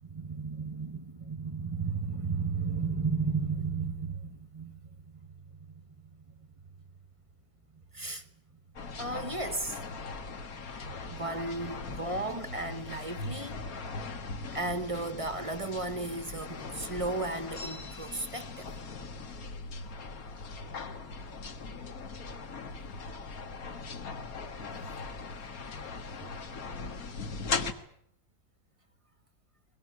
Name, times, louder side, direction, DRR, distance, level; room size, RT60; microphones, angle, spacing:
voice 1, 0.0-6.5 7.9-8.3 9.0-9.8 11.0-13.6 14.5-18.7, right 3 dB, 20° right, 1.1 m, -34 dB
sound 1, 8.8-27.7, left 4 dB, 60° left, 2.0 m, -40 dB
22.5 x 21.0 x 9.6 m
omnidirectional pair, 1.8 m